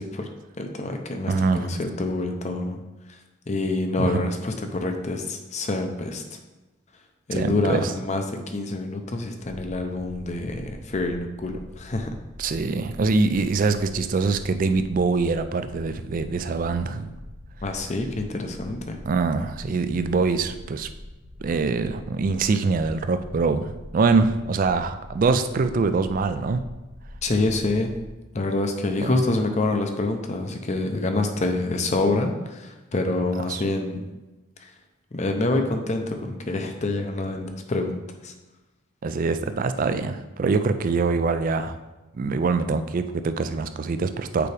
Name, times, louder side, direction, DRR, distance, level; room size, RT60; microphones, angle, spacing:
voice 1, 0.0-2.8 3.1-3.2 3.5-6.2 7.3-12.1 17.6-19.0 27.2-27.9 28.3-34.1 34.6-34.7 35.1-38.3, left 2 dB, 35° left, 5 dB, 0.6 m, -27 dB
voice 2, 1.3-1.7 4.0-4.2 7.3-8.0 12.4-17.1 19.1-20.9 21.4-26.6 29.0-29.2 33.4-33.6 39.0-41.8 42.1-44.5, right 4 dB, 40° right, 10 dB, 0.3 m, -24 dB
sound 1, 9.4-28.1, left 1 dB, ahead, 0.9 m, -43 dB
6.8 x 4.8 x 3.4 m, 1.1 s
head